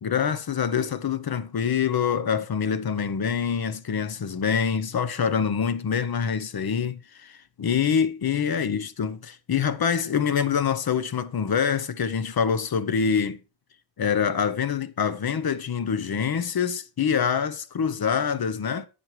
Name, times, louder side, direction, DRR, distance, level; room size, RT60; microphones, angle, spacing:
voice 1, 0.0-13.4 14.0-18.9, left 7 dB, 60° left, 0.9 m, -25 dB
10.5 x 7.9 x 3.2 m
wide cardioid pair, 120°, 42 cm